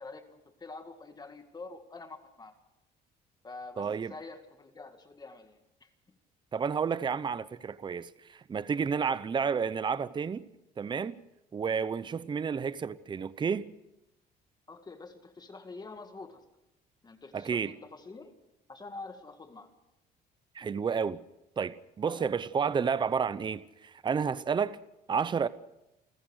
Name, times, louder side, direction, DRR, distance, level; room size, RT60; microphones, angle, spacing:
voice 1, 0.0-2.5 3.4-5.9 9.0-9.2 14.7-16.4 17.0-18.3 18.7-19.7 22.1-22.3, left 3 dB, 25° left, 2.0 m, -46 dB
voice 2, 3.8-4.1 6.5-10.5 10.8-11.2 11.5-13.7 17.3-17.7 20.5-21.2 21.6-24.8 25.1-25.5, right 6 dB, 25° right, 0.8 m, -31 dB
29.0 x 14.5 x 6.5 m
cardioid pair, 110°, 17 cm